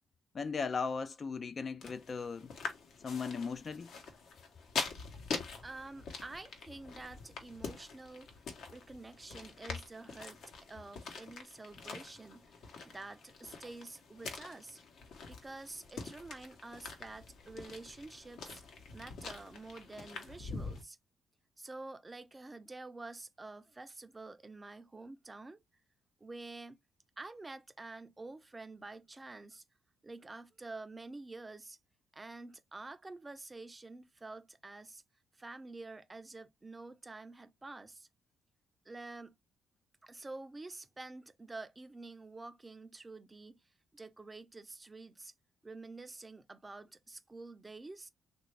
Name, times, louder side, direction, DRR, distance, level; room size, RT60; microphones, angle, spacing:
voice 1, 0.3-2.5 3.0-3.9, left 5 dB, 40° left, 0.4 m, -37 dB
sound 1, 1.8-20.8, left 4 dB, 70° left, 1.0 m, -45 dB
voice 2, 5.6-8.4 8.7-10.4 10.7-14.8 15.2-18.6 18.9-21.0 21.6-25.6 26.2-26.8 27.2-29.6 30.0-31.8 32.1-35.0 35.3-38.1 38.9-39.3 40.0-43.6 43.9-45.3 45.6-48.1, right 3 dB, 20° right, 0.5 m, -48 dB
3.2 x 2.5 x 3.2 m
cardioid pair, 90°, 0 cm